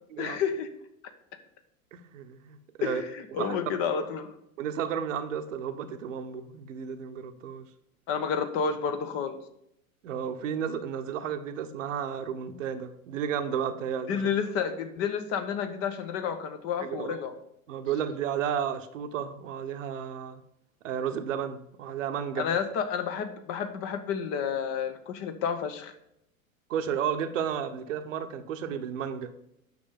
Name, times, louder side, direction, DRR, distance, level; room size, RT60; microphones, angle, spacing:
voice 1, 0.2-0.7 2.8-4.3 8.1-9.4 14.1-17.3 22.4-25.9, left 7 dB, 35° left, 9 dB, 0.9 m, -30 dB
voice 2, 1.9-3.0 3.4-3.6 4.6-7.7 10.0-14.2 16.8-17.2 17.7-20.4 20.8-22.5 26.7-29.3, right 8 dB, 60° right, 9 dB, 0.9 m, -32 dB
9.5 x 6.4 x 3.6 m, 0.78 s
figure-of-eight pair, 90°, 43 cm